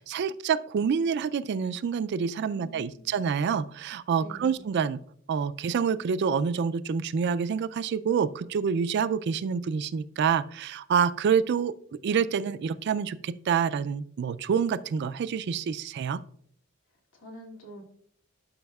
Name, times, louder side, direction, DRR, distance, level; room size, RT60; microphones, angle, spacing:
voice 1, 0.0-5.0 5.3-11.7 12.0-16.2, right 6 dB, 55° right, 15 dB, 0.3 m, -27 dB
voice 2, 2.5-3.2 4.1-4.7 17.1-17.8, right 1 dB, 80° left, -2 dB, 2.4 m, -46 dB
12.0 x 5.5 x 2.3 m, 0.63 s
head